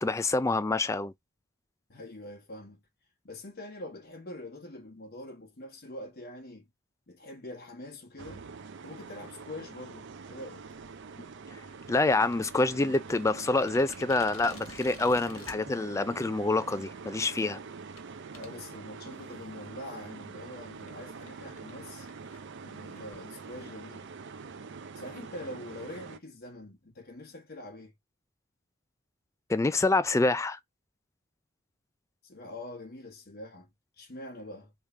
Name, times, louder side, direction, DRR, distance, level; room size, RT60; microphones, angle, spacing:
voice 1, 0.0-1.1 11.9-17.6 29.5-30.6, left 2 dB, 15° left, 0.3 m, -26 dB
voice 2, 1.9-2.8 3.2-6.7 7.1-8.5 8.8-10.7 18.3-22.1 22.6-24.1 24.9-27.9 32.2-34.7, left 1 dB, 50° left, 1.4 m, -44 dB
sound 1, 8.2-26.2, right 5 dB, 60° right, 0.5 m, -45 dB
sound 2, 12.1-15.6 16.4-16.5 17.0-17.2 18.0-18.1 18.3-18.5 19.1-19.6 19.9-20.0 20.3-20.4 20.9-21.0 21.3-21.4 21.6-21.7 22.0-23.7, left 5 dB, 80° left, 1.4 m, -51 dB
3.6 x 3.4 x 4.2 m
head